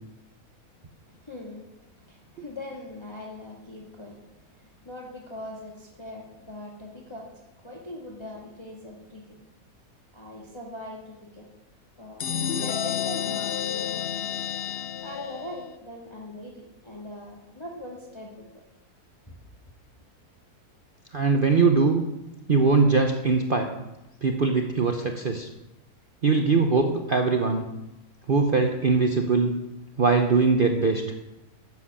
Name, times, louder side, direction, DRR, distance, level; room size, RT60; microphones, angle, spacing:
voice 1, 1.0-9.5 10.1-11.5 12.0-12.3 12.5-14.3 15.0-18.6 19.3-19.4, left 1 dB, 15° left, -2 dB, 1.9 m, -41 dB
sound 1, 12.2-15.8, left 8 dB, 50° left, 0.8 m, -30 dB
voice 2, 21.1-22.0 22.5-23.7 24.2-25.5 26.2-27.7 28.3-29.5 30.0-31.0, right 4 dB, 40° right, 4 dB, 1.0 m, -21 dB
13.0 x 7.9 x 8.5 m, 0.95 s
omnidirectional pair, 1.7 m